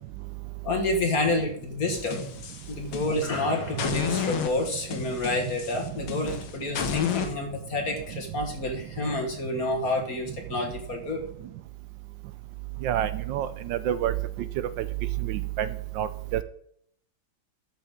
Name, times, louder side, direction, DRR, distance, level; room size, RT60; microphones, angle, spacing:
voice 1, 0.6-2.2 2.7-11.2, left 2 dB, 45° left, 3 dB, 1.9 m, -29 dB
sound 1, 1.9-3.4 3.8-7.3, left 7 dB, 90° left, 1.9 m, -32 dB
voice 2, 12.8-14.1 15.3-15.7 16.0-16.4, right 11 dB, 75° right, 13 dB, 1.2 m, -28 dB
12.5 x 6.3 x 3.6 m, 0.67 s
omnidirectional pair, 2.3 m